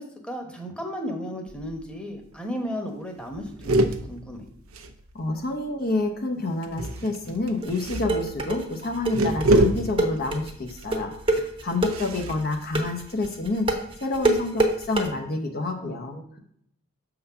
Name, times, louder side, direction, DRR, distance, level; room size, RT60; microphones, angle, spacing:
voice 1, 0.0-4.5 15.7-16.4, equal, 5° left, 1 dB, 1.0 m, -35 dB
sound 1, 1.5-1.9 2.2-2.3 2.6-2.9 3.2-5.5 6.6-13.6, right 1 dB, 75° right, 0.6 m, -28 dB
voice 2, 5.1-13.7 14.0-16.2, left 2 dB, 45° left, 4 dB, 0.7 m, -28 dB
sound 2, 7.6-15.1, right 2 dB, 25° right, 0.9 m, -25 dB
6.7 x 3.8 x 5.6 m, 0.69 s
head